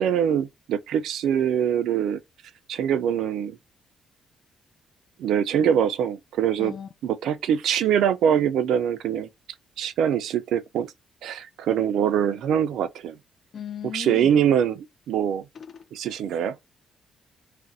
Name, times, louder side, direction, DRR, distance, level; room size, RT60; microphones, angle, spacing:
voice 1, 0.0-2.2 2.7-3.6 5.2-6.7 7.0-9.3 9.8-10.9 11.2-13.2 13.9-15.4 15.9-16.5, right 9 dB, 80° right, 0.4 m, -23 dB
voice 2, 6.6-6.9 13.5-14.3 15.5-15.8, left 8 dB, 40° left, 0.3 m, -36 dB
2.4 x 2.0 x 3.9 m
cardioid pair, 160°, 0 cm